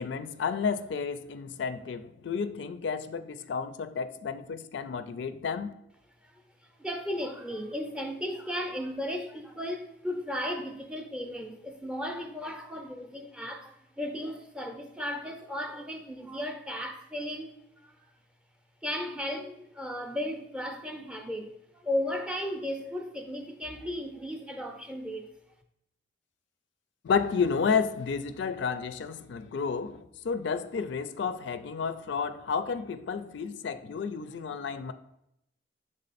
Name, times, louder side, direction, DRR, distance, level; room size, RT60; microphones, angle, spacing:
voice 1, 0.0-5.7 27.0-34.9, left 5 dB, 70° left, 0.4 m, -31 dB
voice 2, 6.2-17.5 17.8-18.1 18.8-25.3, left 1 dB, 5° right, 0.5 m, -35 dB
6.5 x 3.6 x 4.0 m
head